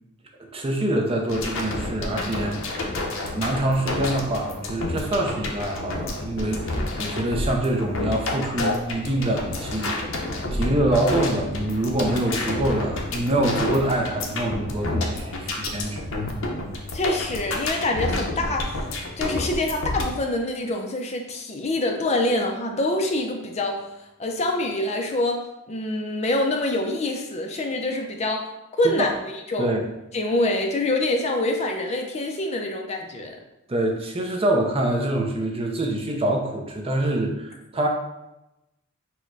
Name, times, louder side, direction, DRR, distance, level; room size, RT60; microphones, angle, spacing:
voice 1, 0.5-2.8 3.3-10.0 10.5-16.0 28.8-29.1 29.6-29.9 33.7-37.9, right 1 dB, 30° right, 1 dB, 0.6 m, -25 dB
sound 1, 1.3-20.1, left 2 dB, 65° left, 0.7 m, -29 dB
voice 2, 16.9-18.9 19.2-23.9 24.2-29.7 30.1-33.4, left 2 dB, 30° left, 2 dB, 0.5 m, -25 dB
4.5 x 2.2 x 4.5 m, 0.94 s
head